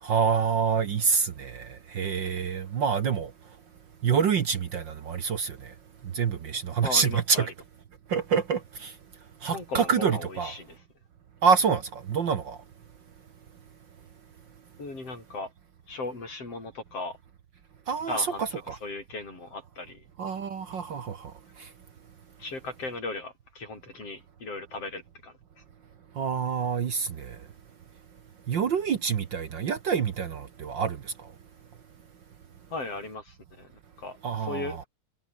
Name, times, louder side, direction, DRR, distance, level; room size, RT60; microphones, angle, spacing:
voice 1, 0.0-3.3 4.0-5.7 6.0-7.4 8.1-9.0 9.4-10.5 11.4-12.6 17.9-18.8 20.2-21.7 26.1-27.5 28.5-31.3 34.2-34.8, right 6 dB, 55° right, 1.4 m, -27 dB
voice 2, 6.8-7.5 9.5-10.8 14.8-15.5 15.9-17.2 18.1-18.5 18.8-20.0 22.4-25.6 32.7-33.7 34.0-34.8, left 3 dB, 50° left, 8.1 m, -37 dB
omnidirectional pair, 3.4 m